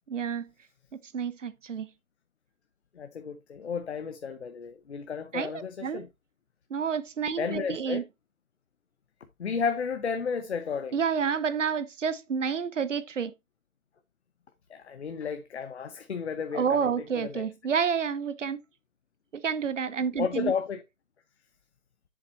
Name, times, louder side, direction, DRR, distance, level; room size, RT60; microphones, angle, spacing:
voice 1, 0.1-0.4 0.9-1.9 5.3-6.0 6.7-8.0 10.9-13.3 16.5-18.6 19.3-20.5, right 6 dB, 60° right, 0.8 m, -29 dB
voice 2, 3.0-6.1 7.4-8.0 9.4-11.0 14.7-16.9 17.1-17.5 20.2-20.8, left 6 dB, 50° left, 0.8 m, -32 dB
8.4 x 7.3 x 2.6 m
hypercardioid pair, 170°, 42 cm